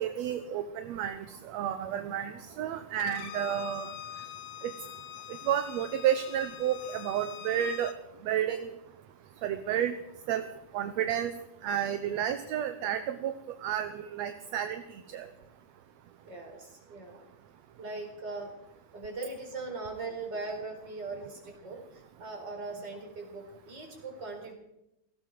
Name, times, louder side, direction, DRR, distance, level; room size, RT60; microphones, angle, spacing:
voice 1, 0.0-3.9 4.6-4.7 5.5-7.9 8.2-8.7 9.4-9.9 10.3-10.4 10.7-11.3 11.6-13.3 13.6-15.3, right 10 dB, 75° right, 9 dB, 2.0 m, -31 dB
Bowed string instrument, 3.0-8.0, left 11 dB, 85° left, 2.5 m, -44 dB
voice 2, 16.2-17.3 17.8-18.5 18.9-24.5, right 3 dB, 35° right, 2 dB, 4.8 m, -40 dB
18.0 x 17.0 x 4.7 m, 0.87 s
omnidirectional pair, 3.3 m